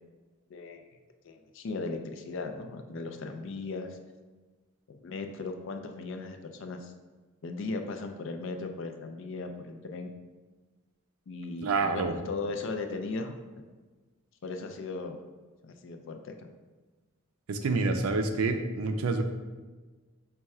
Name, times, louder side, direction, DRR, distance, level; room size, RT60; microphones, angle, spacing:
voice 1, 0.5-0.8 1.2-4.0 4.9-6.9 7.4-10.1 11.3-13.3 14.4-15.2 15.6-16.5, left 3 dB, 60° left, 6 dB, 0.4 m, -37 dB
voice 2, 11.6-12.1 17.5-19.2, right 3 dB, 80° right, 6 dB, 0.4 m, -27 dB
4.2 x 2.3 x 4.6 m, 1.3 s
head